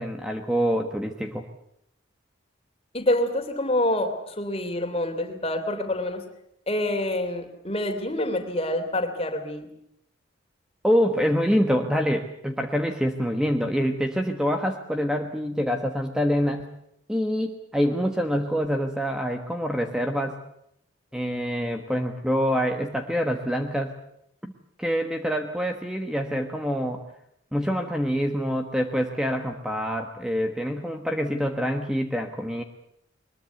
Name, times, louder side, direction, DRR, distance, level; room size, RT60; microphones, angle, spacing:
voice 1, 0.0-1.5 10.8-16.7 17.1-20.4 21.1-23.9 24.4-24.5 24.8-27.0 27.5-32.6, equal, 5° right, 4 dB, 1.3 m, -26 dB
voice 2, 2.9-6.2 6.7-9.7, left 1 dB, 30° left, 6 dB, 3.2 m, -27 dB
22.0 x 21.5 x 8.2 m, 0.75 s
head